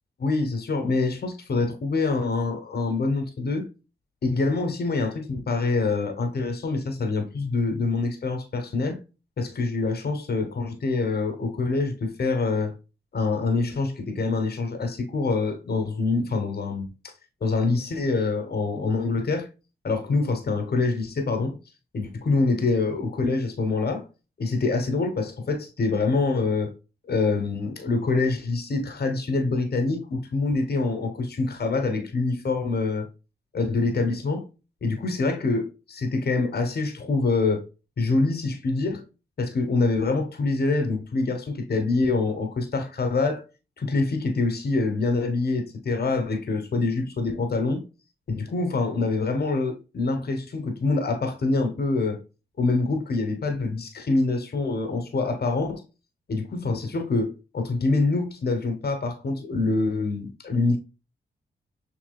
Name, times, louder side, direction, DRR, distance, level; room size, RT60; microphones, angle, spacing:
voice 1, 0.2-3.7 4.2-9.0 9.4-12.7 13.1-17.1 17.4-19.5 19.8-21.6 21.9-24.0 24.4-26.7 27.1-33.1 33.5-34.4 34.8-37.6 38.0-39.0 39.4-43.4 43.8-47.8 48.3-52.2 52.6-55.8 56.3-60.8, left 3 dB, 55° left, 1.2 m, -25 dB
6.4 x 3.2 x 2.3 m
cardioid pair, 65°, 20 cm